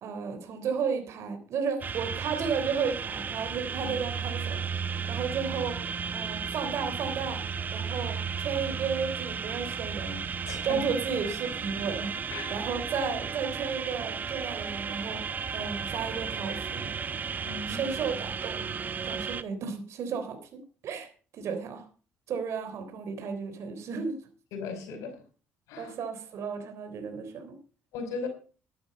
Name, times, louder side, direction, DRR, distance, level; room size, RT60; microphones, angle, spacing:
voice 1, 0.0-4.6 5.1-5.8 6.1-7.4 7.7-10.2 10.6-15.2 15.5-16.9 17.7-18.7 19.0-21.9 22.3-24.2 25.8-27.6, right 6 dB, 60° right, 3.5 m, -33 dB
sound 1, 1.8-19.4, right 6 dB, 35° right, 0.8 m, -34 dB
voice 2, 10.5-10.9 12.3-12.6 13.0-13.1 17.4-17.8 24.5-25.2 25.7-25.9 27.9-28.3, left 4 dB, 80° left, 5.3 m, -37 dB
12.0 x 11.0 x 5.3 m
cardioid pair, 100°, 5 cm